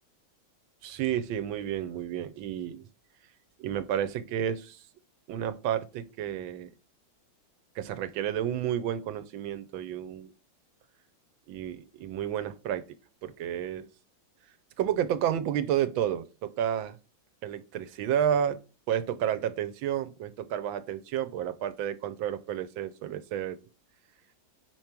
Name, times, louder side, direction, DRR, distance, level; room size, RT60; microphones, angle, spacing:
voice 1, 0.8-2.9 3.6-4.8 5.3-6.7 7.8-10.3 11.5-12.8 13.2-13.9 14.8-17.0 17.4-18.6 18.9-23.6, right 10 dB, 85° right, 1.4 m, -31 dB
5.1 x 4.5 x 5.9 m
omnidirectional pair, 2.1 m